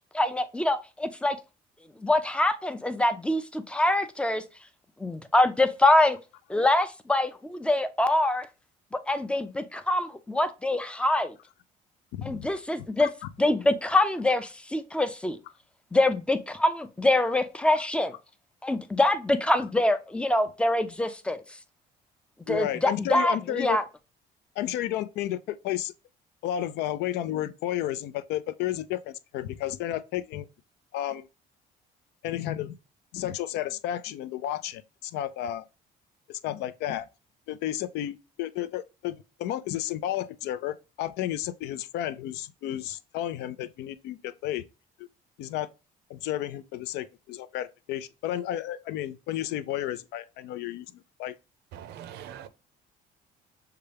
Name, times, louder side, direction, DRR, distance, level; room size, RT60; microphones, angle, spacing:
voice 1, 0.1-1.4 2.0-4.4 5.0-6.2 6.5-8.5 8.9-11.3 12.2-13.1 13.4-15.4 15.9-18.2 18.6-21.4 22.5-23.8, left 1 dB, 5° left, 0.4 m, -25 dB
voice 2, 12.1-12.5 13.0-13.1 22.5-23.8 24.6-25.9 26.4-30.5 30.9-31.3 32.2-32.8 33.1-35.6 36.3-37.1 37.5-44.6 45.0-45.1 45.4-45.7 46.1-51.3, left 12 dB, 85° left, 0.4 m, -32 dB
voice 3, 51.7-52.5, right 10 dB, 75° right, 0.5 m, -42 dB
6.5 x 2.3 x 3.3 m
cardioid pair, 110°, 17 cm